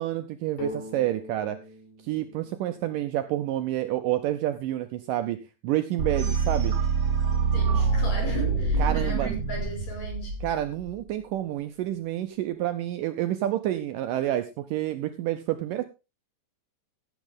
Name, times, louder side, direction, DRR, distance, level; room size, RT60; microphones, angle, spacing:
voice 1, 0.0-1.6 2.0-6.8 8.8-9.3 10.4-15.8, right 13 dB, 80° right, 10 dB, 2.0 m, -29 dB
sound 1, 0.6-4.3, left 5 dB, 80° left, 5.1 m, -43 dB
sound 2, 6.0-10.9, right 4 dB, 35° right, 2.4 m, -25 dB
voice 2, 7.5-10.4, equal, 45° left, 0 dB, 7.1 m, -37 dB
17.0 x 8.2 x 3.7 m, 0.29 s
omnidirectional pair, 4.5 m